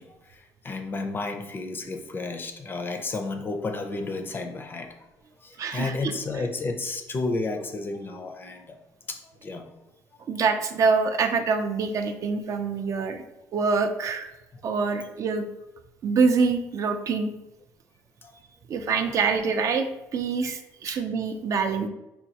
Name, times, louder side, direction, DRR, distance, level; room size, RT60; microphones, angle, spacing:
voice 1, 0.0-5.0 5.4-8.8 9.1-9.7 14.5-14.6 18.2-18.3 20.9-21.0, left 3 dB, 30° left, 5 dB, 0.4 m, -32 dB
voice 2, 5.6-6.1 10.3-13.2 13.5-14.3 14.6-15.5 16.0-17.3 18.7-21.9, right 5 dB, 50° right, 7 dB, 0.4 m, -25 dB
4.2 x 2.3 x 2.8 m, 0.94 s
cardioid pair, 105°, 7 cm